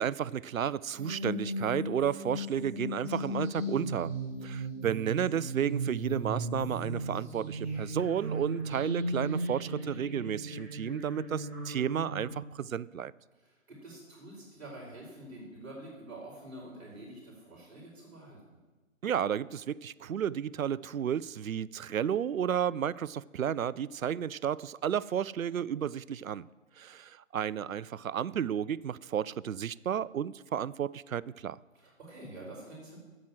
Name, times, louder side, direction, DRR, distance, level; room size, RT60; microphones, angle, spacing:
voice 1, 0.0-4.1 4.4-13.1 19.0-26.5 26.8-31.6, right 9 dB, 80° right, 0.5 m, -32 dB
sound 1, 0.9-12.2, right 1 dB, 10° right, 0.8 m, -36 dB
voice 2, 13.3-18.6 31.7-33.0, right 1 dB, 50° right, 4.4 m, -47 dB
9.2 x 7.5 x 7.8 m
figure-of-eight pair, 150°, 40 cm